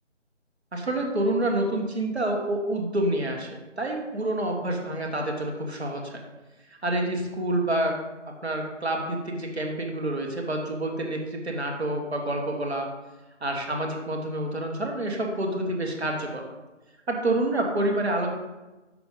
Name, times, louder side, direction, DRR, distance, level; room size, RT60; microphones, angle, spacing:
voice 1, 0.7-6.2 6.7-8.0 8.4-12.9 13.4-16.4 17.1-18.3, right 1 dB, 55° right, 1 dB, 1.4 m, -28 dB
6.0 x 5.7 x 3.9 m, 1.1 s
figure-of-eight pair, 175°, 38 cm